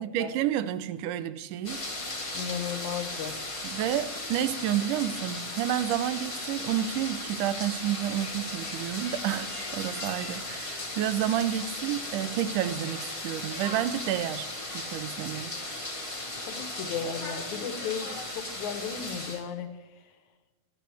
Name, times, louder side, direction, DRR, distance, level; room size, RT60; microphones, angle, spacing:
voice 1, 0.0-1.8 3.6-14.5 14.7-15.5, right 11 dB, 90° right, 14 dB, 2.2 m, -30 dB
sound 1, 1.6-19.4, left 2 dB, 25° left, 0.6 m, -36 dB
voice 2, 2.3-3.3 16.4-19.7, left 7 dB, 75° left, 9 dB, 2.2 m, -35 dB
17.0 x 12.5 x 3.4 m, 1.2 s
omnidirectional pair, 3.6 m